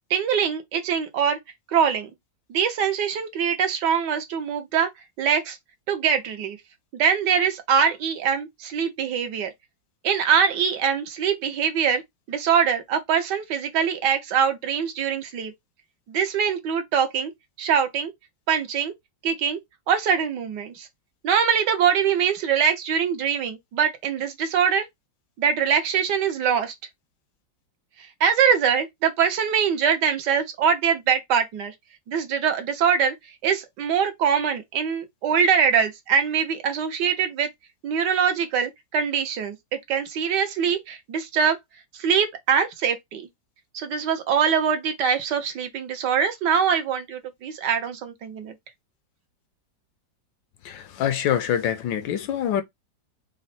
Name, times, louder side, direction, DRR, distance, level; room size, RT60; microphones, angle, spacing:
voice 1, 0.1-1.4 1.7-2.1 2.5-4.9 5.2-5.6 5.9-6.6 6.9-9.5 10.0-12.0 12.3-15.5 16.1-17.3 17.6-18.1 18.5-18.9 19.2-19.6 19.9-20.9 21.2-24.8 25.4-26.7 28.2-31.7 32.1-33.1 33.4-37.5 37.8-39.6 39.9-41.6 42.0-43.3 43.7-48.5, right 7 dB, 70° right, 1.4 m, -23 dB
voice 2, 50.6-52.6, left 9 dB, 80° left, 1.4 m, -25 dB
4.2 x 2.1 x 4.0 m
omnidirectional pair, 2.0 m